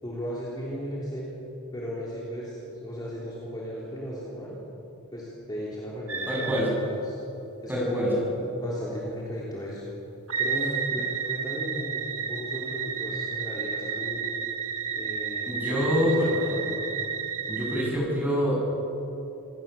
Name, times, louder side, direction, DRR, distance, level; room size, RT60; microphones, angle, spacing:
voice 1, 0.0-1.3 1.7-4.6 5.1-7.2 7.6-9.8 10.4-14.3 14.9-16.9, equal, 20° left, -6 dB, 3.5 m, -35 dB
sound 1, 6.1-6.7 10.3-17.9, right 6 dB, 70° right, 2.0 m, -31 dB
voice 2, 6.3-6.7 7.7-8.1 15.5-16.3 17.5-18.5, equal, 10° right, -4 dB, 7.5 m, -26 dB
27.0 x 18.5 x 7.1 m, 3.0 s
head